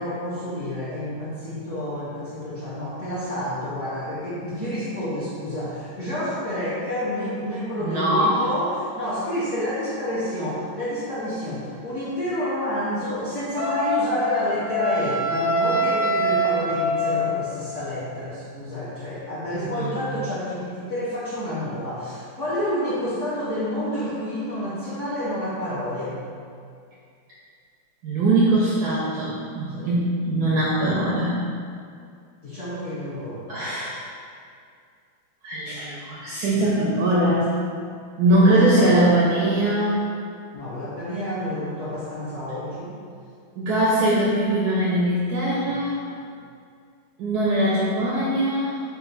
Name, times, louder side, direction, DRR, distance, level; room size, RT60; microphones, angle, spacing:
voice 1, 0.0-26.1 29.7-29.9 32.4-33.6 38.4-39.0 40.5-43.0 45.7-45.8, equal, 60° left, -11 dB, 0.8 m, -29 dB
voice 2, 7.8-8.4 19.5-20.3 28.0-31.4 33.5-34.0 35.4-37.5 38.2-40.0 43.6-46.0 47.2-48.8, right 1 dB, 75° right, -6 dB, 0.9 m, -21 dB
Wind instrument woodwind instrument, 13.6-17.5, equal, 75° left, 0.4 m, -24 dB
4.2 x 2.5 x 3.8 m, 2.3 s
omnidirectional pair, 2.2 m